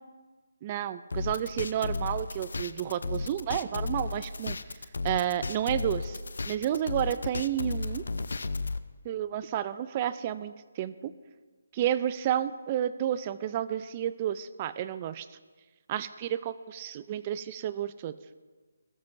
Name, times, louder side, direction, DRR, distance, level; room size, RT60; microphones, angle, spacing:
voice 1, 0.6-4.6 5.0-6.2 6.4-8.0 9.0-11.1 11.7-15.3 15.9-18.1, right 11 dB, 25° right, 15 dB, 0.3 m, -31 dB
sound 1, 1.1-8.8, left 3 dB, 75° left, 0.5 m, -34 dB
14.0 x 12.5 x 2.6 m, 1.4 s
hypercardioid pair, 160°, 0 cm